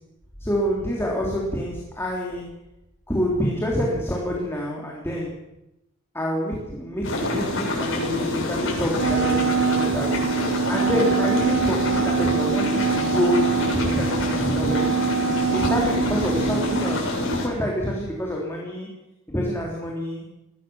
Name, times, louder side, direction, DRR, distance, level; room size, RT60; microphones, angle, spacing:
voice 1, 0.4-2.5 3.1-5.4 6.1-10.3 10.7-15.0 15.5-18.9 19.3-20.3, equal, 10° left, -2 dB, 3.8 m, -27 dB
sound 1, 7.0-17.5, left 2 dB, 65° left, 7.6 m, -26 dB
Wind instrument woodwind instrument, 8.9-17.1, right 7 dB, 90° right, 1.0 m, -24 dB
21.5 x 17.0 x 7.4 m, 0.91 s
head